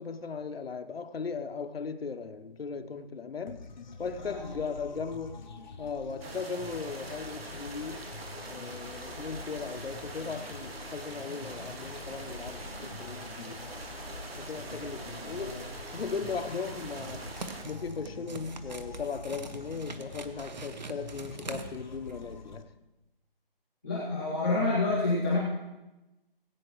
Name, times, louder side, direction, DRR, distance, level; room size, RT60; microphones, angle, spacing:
voice 1, 0.0-3.7 4.0-5.4 5.8-8.0 8.5-13.6 14.4-15.6 15.9-17.3 17.6-22.7, left 5 dB, 80° left, 0.9 m, -37 dB
sound 1, 3.5-22.6, left 4 dB, 50° left, 0.8 m, -46 dB
voice 2, 4.2-4.7 14.5-15.6 23.8-25.4, left 2 dB, ahead, 0.7 m, -30 dB
sound 2, 6.2-17.6, right 2 dB, 85° right, 1.9 m, -43 dB
sound 3, 16.7-22.3, right 4 dB, 50° right, 0.8 m, -44 dB
18.5 x 8.8 x 3.1 m
hypercardioid pair, 175°, 30 cm